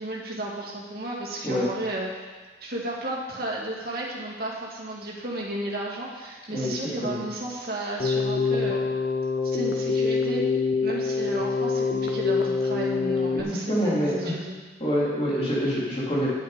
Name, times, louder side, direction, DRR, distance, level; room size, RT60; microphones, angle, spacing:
voice 1, 0.0-2.1 2.6-8.9 9.4-10.4 10.8-14.6, right 1 dB, 55° right, -3 dB, 2.1 m, -33 dB
Keyboard (musical), 8.0-13.4, left 4 dB, 55° left, 0.7 m, -25 dB
voice 2, 13.3-14.3 14.8-16.3, equal, 30° left, -7 dB, 3.1 m, -26 dB
9.8 x 8.6 x 5.1 m, 1.3 s
head